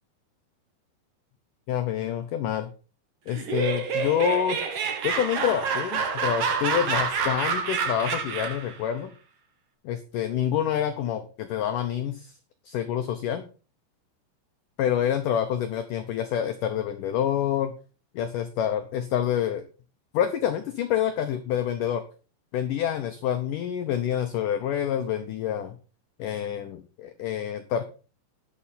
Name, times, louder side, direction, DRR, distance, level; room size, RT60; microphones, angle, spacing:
voice 1, 1.7-2.7 3.3-9.1 9.9-12.3 12.7-13.4 14.8-17.7 18.2-19.6 20.1-22.0 22.5-25.8 26.2-27.8, left 9 dB, 90° left, 8 dB, 1.8 m, -27 dB
Laughter, 3.3-8.7, right 5 dB, 55° right, 1.7 m, -28 dB
11.5 x 6.9 x 5.6 m, 0.35 s
omnidirectional pair, 5.0 m